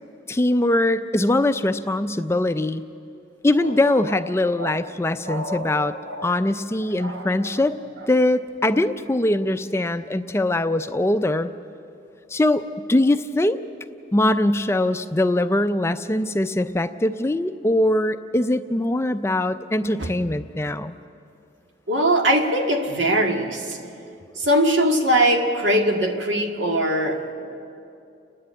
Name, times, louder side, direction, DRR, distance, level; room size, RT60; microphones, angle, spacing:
voice 1, 0.3-2.8 3.4-5.9 6.2-7.8 8.1-11.5 12.3-12.6 12.9-13.6 14.1-20.9, left 1 dB, 15° left, 10 dB, 0.4 m, -22 dB
voice 2, 3.9-4.2 4.6-4.9 5.2-6.3 7.0-7.6 20.0-20.1 21.9-23.8 24.4-27.3, right 1 dB, 80° right, 3 dB, 2.0 m, -22 dB
30.0 x 10.5 x 8.7 m, 2.6 s
head